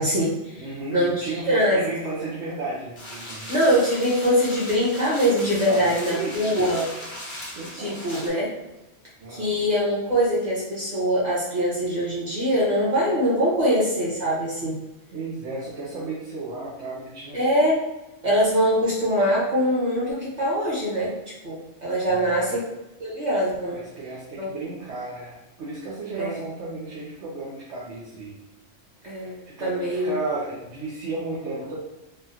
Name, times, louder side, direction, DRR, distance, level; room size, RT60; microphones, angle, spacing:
voice 1, 0.0-0.6 0.9-1.1 1.5-1.8 3.5-6.8 7.7-8.5 9.3-14.7 17.3-17.8 18.2-21.1 21.4-22.6 23.0-23.8 24.4-24.5 26.2-26.4 29.0-30.2, equal, 35° right, -6 dB, 1.3 m, -23 dB
voice 2, 0.6-3.5 5.6-6.7 7.5-8.1 9.2-9.5 15.1-17.4 22.0-22.6 23.7-28.4 29.4-31.8, right 3 dB, 65° right, -6 dB, 1.0 m, -33 dB
sound 1, 3.0-8.3, left 1 dB, 30° left, 0.8 m, -38 dB
3.5 x 2.3 x 2.7 m, 0.98 s
omnidirectional pair, 1.3 m